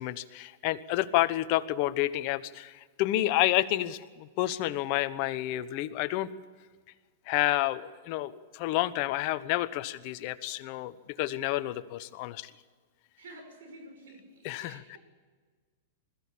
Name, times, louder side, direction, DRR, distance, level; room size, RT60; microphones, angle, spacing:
voice 1, 0.0-6.3 7.3-10.9 11.2-12.5 14.4-15.0, left 15 dB, 50° left, 12 dB, 1.1 m, -29 dB
voice 2, 13.2-14.2 14.6-15.0, right 2 dB, 80° right, 4 dB, 6.3 m, -49 dB
21.5 x 14.5 x 8.6 m, 1.5 s
hypercardioid pair, 130°, 0 cm